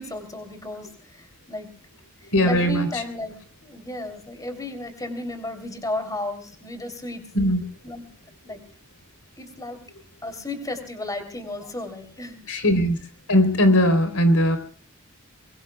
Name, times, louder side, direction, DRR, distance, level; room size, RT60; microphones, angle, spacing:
voice 1, 0.0-1.7 2.2-3.4 3.6-7.2 7.8-8.1 8.4-8.6 9.4-9.8 10.2-12.4, left 2 dB, 15° left, 6 dB, 3.2 m, -33 dB
voice 2, 2.3-2.9 7.3-7.6 12.5-13.0 13.3-14.6, equal, 90° left, 8 dB, 3.6 m, -19 dB
24.0 x 23.0 x 2.3 m, 0.43 s
head